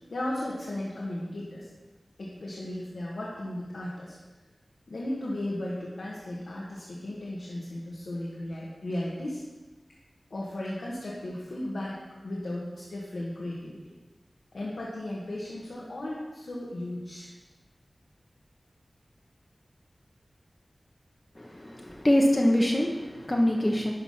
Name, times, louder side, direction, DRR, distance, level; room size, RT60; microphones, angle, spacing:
voice 1, 0.1-1.7 2.2-4.1 4.9-9.4 10.3-13.8 14.5-17.3, left 1 dB, 85° left, -6 dB, 1.7 m, -35 dB
voice 2, 21.4-23.9, left 1 dB, 25° left, 0 dB, 1.1 m, -24 dB
11.5 x 3.9 x 5.7 m, 1.2 s
cardioid pair, 45°, 0 cm